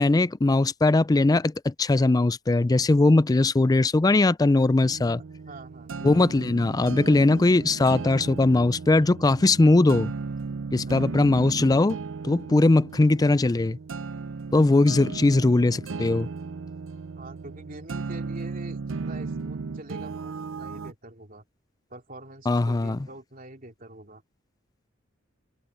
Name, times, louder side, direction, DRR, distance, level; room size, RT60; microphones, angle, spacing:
voice 1, 0.0-5.2 6.0-10.1 10.7-12.0 12.2-13.8 14.5-16.3 22.5-23.0, left 2 dB, 20° left, 0.4 m, -20 dB
sound 1, 4.8-20.9, right 4 dB, 80° right, 0.6 m, -36 dB
voice 2, 5.4-5.9 10.8-11.1 17.1-21.4 21.9-24.2, right 2 dB, 45° right, 2.9 m, -44 dB
head